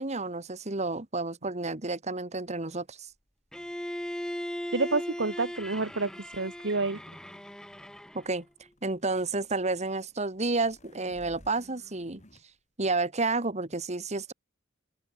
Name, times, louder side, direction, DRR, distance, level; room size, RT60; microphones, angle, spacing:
voice 1, 0.0-3.1 8.1-8.5 8.8-12.2 12.8-14.3, right 3 dB, 35° right, 2.0 m, -30 dB
Bowed string instrument, 3.5-8.4, equal, 5° left, 0.8 m, -38 dB
voice 2, 4.7-7.0, right 3 dB, 65° right, 1.4 m, -29 dB
sound 1, 7.8-12.4, left 1 dB, 40° left, 5.4 m, -57 dB
open air
head